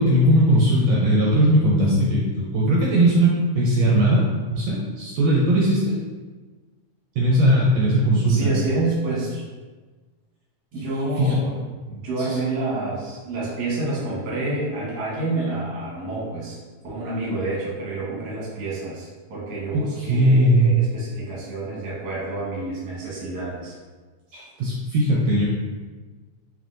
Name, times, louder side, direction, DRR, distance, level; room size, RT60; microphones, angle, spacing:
voice 1, 0.0-4.2 4.5-5.9 7.1-8.5 11.2-11.4 11.9-12.4 20.0-20.8 24.3-25.4, right 1 dB, 75° right, -4 dB, 1.6 m, -19 dB
voice 2, 8.3-9.4 10.7-11.5 11.9-16.6 16.8-23.8, right 2 dB, 50° right, -6 dB, 1.2 m, -28 dB
5.2 x 2.9 x 2.5 m, 1.3 s
omnidirectional pair, 3.4 m